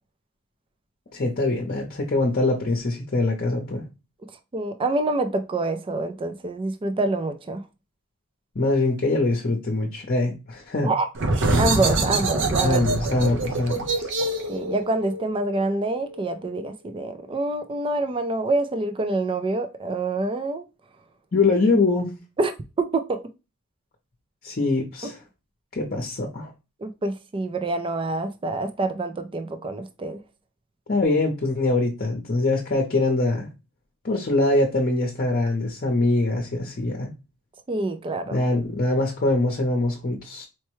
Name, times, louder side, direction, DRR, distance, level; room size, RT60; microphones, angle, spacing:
voice 1, 1.1-3.8 8.5-10.9 12.6-14.1 21.3-22.1 24.4-25.2 25.8-26.5 30.9-33.5 34.0-37.1 38.3-40.4, left 2 dB, 45° left, 0.7 m, -23 dB
voice 2, 4.5-7.6 10.8-11.1 11.6-12.8 14.5-20.6 22.4-22.5 22.9-23.2 25.0-25.1 26.8-30.2 37.7-38.4, right 2 dB, 25° right, 0.4 m, -26 dB
sound 1, 11.1-16.5, right 2 dB, 55° right, 0.7 m, -25 dB
4.4 x 2.2 x 3.0 m
head